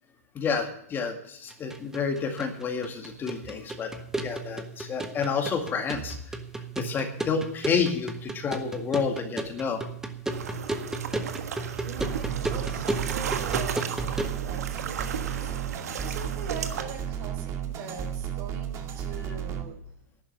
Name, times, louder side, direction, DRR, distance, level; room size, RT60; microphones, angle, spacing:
voice 1, 0.4-3.9 4.2-6.2 6.8-9.8 19.2-19.3, left 5 dB, 25° left, 4 dB, 2.0 m, -29 dB
sound 1, 1.5-14.4, right 2 dB, 5° right, 1.4 m, -34 dB
sound 2, 10.3-16.8, right 7 dB, 75° right, 1.4 m, -35 dB
voice 2, 11.7-14.0 14.4-19.8, right 5 dB, 50° right, 5 dB, 4.3 m, -42 dB
sound 3, 12.0-19.6, right 9 dB, 35° right, 2.1 m, -33 dB
11.5 x 10.0 x 6.7 m, 0.69 s
hypercardioid pair, 115°, 8 cm